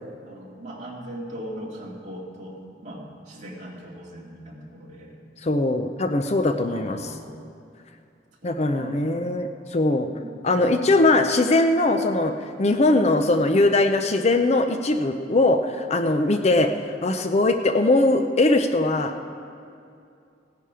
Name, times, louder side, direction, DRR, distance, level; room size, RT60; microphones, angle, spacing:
voice 1, 0.2-5.2 6.6-7.3 8.4-9.0 10.0-11.1, right 1 dB, 40° right, -3 dB, 2.3 m, -40 dB
voice 2, 5.4-7.0 8.4-10.1 10.4-12.3 12.6-16.7 17.0-19.3, left 2 dB, 35° left, 7 dB, 0.6 m, -21 dB
17.0 x 10.5 x 5.0 m, 2.5 s
head